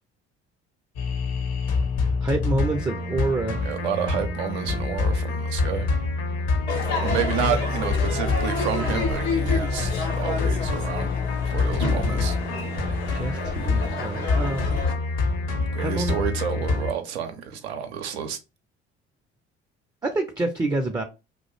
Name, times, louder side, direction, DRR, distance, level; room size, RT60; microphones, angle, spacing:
sound 1, 1.0-16.9, left 3 dB, 50° left, 0.7 m, -26 dB
voice 1, 2.2-3.7 13.1-14.7 15.8-16.2 16.6-16.7 20.0-21.0, right 2 dB, 10° right, 0.4 m, -27 dB
voice 2, 3.6-5.9 7.0-11.1 11.5-12.4 15.7-18.4, right 8 dB, 85° right, 0.5 m, -30 dB
Crowd / Fireworks, 6.7-14.9, left 4 dB, 85° left, 0.8 m, -30 dB
2.3 x 2.0 x 3.0 m
hypercardioid pair, 55°, 32 cm